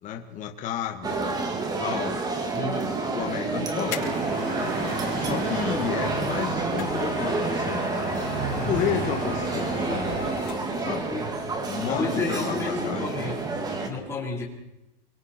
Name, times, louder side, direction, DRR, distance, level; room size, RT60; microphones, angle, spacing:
voice 1, 0.0-1.2 1.8-2.2 3.1-4.2 4.6-4.8 5.2-7.8 8.5-10.3 10.8-11.1 11.7-13.1, left 9 dB, 25° left, 3 dB, 1.9 m, -32 dB
sound 1, 1.0-13.9, right 3 dB, 15° right, 2.3 m, -29 dB
voice 2, 2.5-2.9 11.1-11.3 11.9-13.4 13.8-14.4, left 4 dB, 10° left, -3 dB, 4.4 m, -31 dB
sound 2, 3.4-5.1 6.3-10.9 11.2-11.3, left 10 dB, 70° left, 5.6 m, -39 dB
sound 3, 3.8-10.3, right 3 dB, 35° right, 7.7 m, -34 dB
28.5 x 24.0 x 4.6 m, 0.92 s
supercardioid pair, 155°, 29 cm